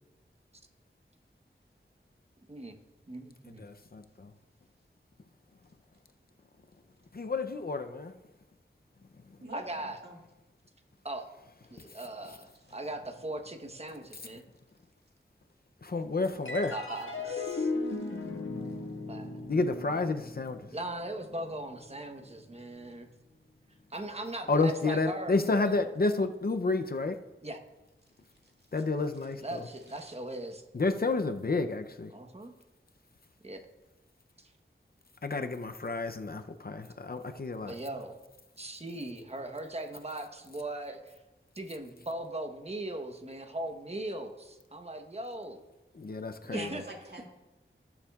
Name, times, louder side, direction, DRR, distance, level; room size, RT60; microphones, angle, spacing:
voice 1, 3.1-3.6 9.5-10.0 11.0-11.3 11.7-14.4 16.7-17.7 19.1-19.4 20.7-23.1 23.9-25.7 27.4-27.6 29.4-30.6 32.1-32.5 33.4-33.7 37.6-38.2 38.6-41.1 41.6-45.6 46.5-46.8, right 1 dB, 30° right, 5 dB, 1.0 m, -39 dB
voice 2, 3.6-4.3 7.1-8.1 15.8-16.7 19.5-20.7 24.5-27.2 28.7-29.7 30.7-32.1 35.2-37.7 45.9-46.8, left 3 dB, 50° left, 7 dB, 0.6 m, -30 dB
sound 1, 16.5-23.1, left 3 dB, 80° left, 1.6 m, -38 dB
voice 3, 46.5-47.3, right 1 dB, 55° right, 0 dB, 1.9 m, -45 dB
17.5 x 7.2 x 2.4 m, 1.0 s
wide cardioid pair, 60°, 20 cm